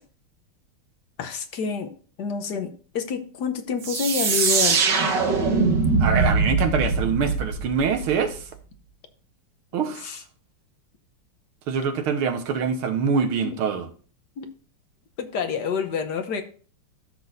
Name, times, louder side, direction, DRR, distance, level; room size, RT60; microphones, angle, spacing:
voice 1, 1.2-1.9 2.2-5.0 9.7-10.2 13.4-13.5 14.4-14.5 15.2-16.4, left 6 dB, 60° left, 7 dB, 1.3 m, -28 dB
sound 1, 3.8-8.4, right 4 dB, 60° right, 1.7 m, -22 dB
voice 2, 6.0-8.5 9.7-10.2 11.7-13.9, right 6 dB, 80° right, 6 dB, 2.0 m, -24 dB
13.5 x 6.1 x 2.6 m, 0.41 s
omnidirectional pair, 2.3 m